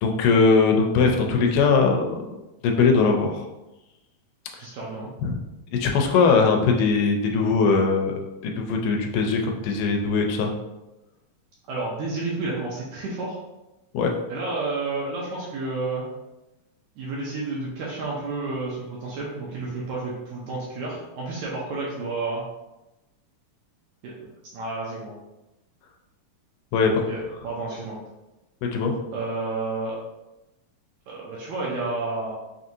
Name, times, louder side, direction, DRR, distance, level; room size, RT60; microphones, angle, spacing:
voice 1, 0.0-2.2 2.6-3.5 5.2-5.4 5.7-10.5 13.9-14.1 26.7-26.9 28.6-28.9, left 4 dB, 85° left, 2 dB, 2.2 m, -20 dB
voice 2, 4.6-5.1 11.7-13.4 14.3-16.0 17.0-22.4 24.0-24.3 24.5-25.1 26.9-28.0 29.1-29.9 31.1-32.3, right 3 dB, 75° right, -5 dB, 1.8 m, -30 dB
5.8 x 2.6 x 2.6 m, 0.98 s
omnidirectional pair, 3.9 m